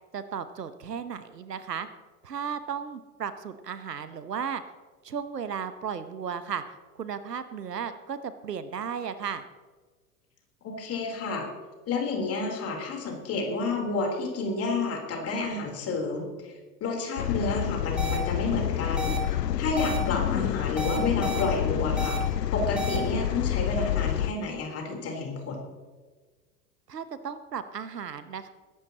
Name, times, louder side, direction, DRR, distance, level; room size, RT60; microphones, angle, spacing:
voice 1, 0.1-1.9 2.2-4.6 5.0-6.6 6.9-9.4 26.9-28.5, right 7 dB, 75° right, 12 dB, 1.1 m, -35 dB
voice 2, 10.6-11.5 11.9-16.5 16.8-22.2 22.5-25.6, left 3 dB, 30° left, 1 dB, 3.9 m, -30 dB
sound 1, 17.2-24.3, left 11 dB, 80° left, 0.6 m, -28 dB
sound 2, 18.0-18.2 19.0-19.2 19.8-20.0 20.8-21.4 22.0-22.2 22.8-23.0, right 2 dB, ahead, 1.9 m, -33 dB
22.5 x 11.5 x 3.0 m, 1.4 s
figure-of-eight pair, 90°, 48 cm